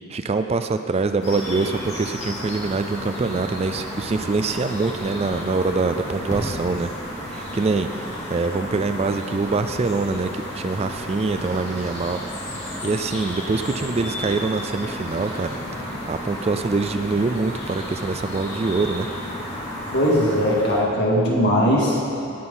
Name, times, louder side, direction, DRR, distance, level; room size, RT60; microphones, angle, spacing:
voice 1, 0.1-6.9 7.2-7.9 8.3-12.2 12.8-19.1, right 3 dB, 30° right, 8 dB, 0.3 m, -24 dB
sound 1, 1.2-20.8, equal, 30° left, 2.7 m, -32 dB
voice 2, 19.9-22.0, equal, 55° left, -3 dB, 2.2 m, -19 dB
18.0 x 6.2 x 5.6 m, 2.7 s
head